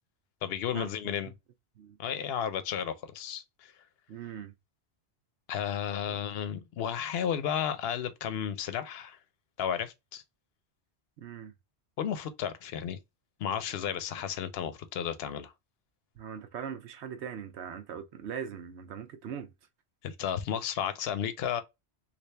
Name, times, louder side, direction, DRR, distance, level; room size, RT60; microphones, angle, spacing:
voice 1, 0.4-1.3 2.0-3.7 5.5-9.2 9.6-10.2 12.0-13.0 13.4-15.5 20.0-21.6, left 8 dB, 65° left, 0.8 m, -33 dB
voice 2, 4.1-4.5 6.1-6.2 11.2-11.5 16.2-19.5, right 8 dB, 80° right, 0.9 m, -40 dB
3.3 x 2.6 x 3.2 m
omnidirectional pair, 1.1 m